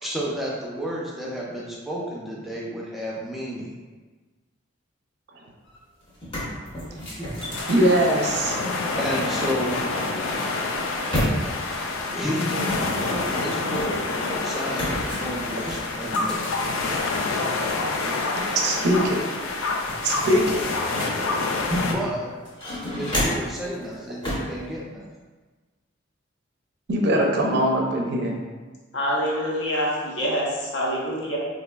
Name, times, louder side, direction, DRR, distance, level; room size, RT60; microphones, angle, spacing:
voice 1, 0.0-3.7 9.0-9.8 12.1-16.5 21.7-22.3 23.0-25.1, equal, ahead, -5 dB, 0.5 m, -31 dB
sound 1, 5.7-5.8 6.1-8.8 9.7-11.7 12.5-14.1 14.7-17.1 17.5-18.6 18.9-19.0 19.4-22.0 22.4-23.6 24.2-24.6, equal, 25° left, 0.8 m, -31 dB
sound 2, 7.5-21.9, left 3 dB, 90° left, 0.4 m, -27 dB
voice 2, 7.7-8.6 18.5-19.2 20.0-20.6 26.9-28.3, right 1 dB, 55° right, 1 dB, 0.4 m, -21 dB
voice 3, 28.9-31.4, equal, 60° left, -4 dB, 0.8 m, -26 dB
4.0 x 2.6 x 2.2 m, 1.3 s
head